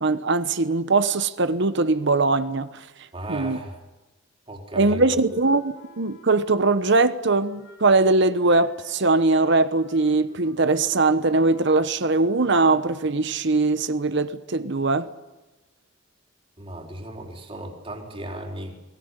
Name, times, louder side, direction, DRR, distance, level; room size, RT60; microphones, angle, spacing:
voice 1, 0.0-2.7 3.3-3.6 4.7-15.1, right 3 dB, 60° right, 1.1 m, -21 dB
voice 2, 3.1-3.8 4.5-5.2 16.6-18.7, right 1 dB, 30° right, 4.1 m, -36 dB
Wind instrument woodwind instrument, 5.3-12.8, left 2 dB, 75° left, 5.7 m, -52 dB
22.5 x 18.0 x 9.9 m
head